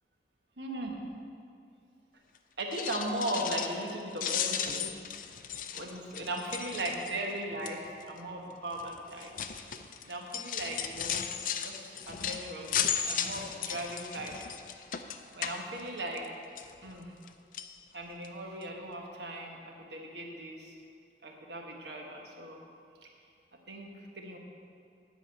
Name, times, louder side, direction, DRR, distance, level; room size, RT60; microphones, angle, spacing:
voice 1, 0.6-0.9 2.6-4.9 5.7-9.7 10.0-11.3 11.6-14.3 15.3-16.3 16.8-17.1 17.9-20.7 21.2-22.6 23.7-24.4, right 1 dB, 80° right, 1 dB, 1.4 m, -38 dB
sound 1, 2.6-3.9 4.2-7.3 7.6-8.0 8.7-16.3 16.6-17.3 17.5-17.7 18.2-18.3 18.6-18.7, left 8 dB, 50° left, 0.4 m, -35 dB
10.5 x 5.1 x 7.8 m, 2.4 s
head